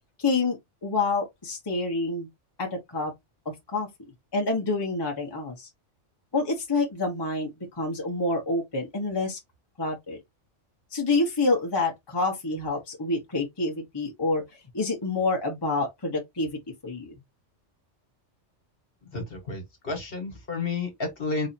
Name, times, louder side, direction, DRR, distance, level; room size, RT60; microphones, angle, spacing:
voice 1, 0.2-2.3 2.6-3.1 3.7-3.9 4.3-5.7 6.3-9.4 9.8-10.2 10.9-14.4 14.7-16.5 16.8-17.2, left 3 dB, 20° left, 1.0 m, -27 dB
voice 2, 19.1-21.5, left 3 dB, 50° left, 1.6 m, -31 dB
4.0 x 2.7 x 2.7 m
omnidirectional pair, 1.2 m